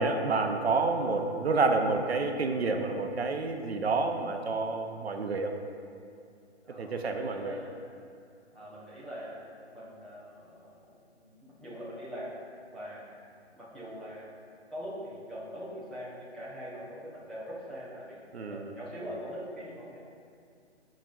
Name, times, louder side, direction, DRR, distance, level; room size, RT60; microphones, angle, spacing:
voice 1, 0.0-5.5 6.8-7.6 18.3-18.7, right 3 dB, 65° right, 4 dB, 0.7 m, -29 dB
voice 2, 6.6-7.8 8.5-12.3 12.7-13.1 13.5-14.3 14.7-18.2 18.5-20.0, equal, ahead, -11 dB, 1.0 m, -43 dB
15.0 x 5.2 x 2.6 m, 2.4 s
figure-of-eight pair, 140°, 34 cm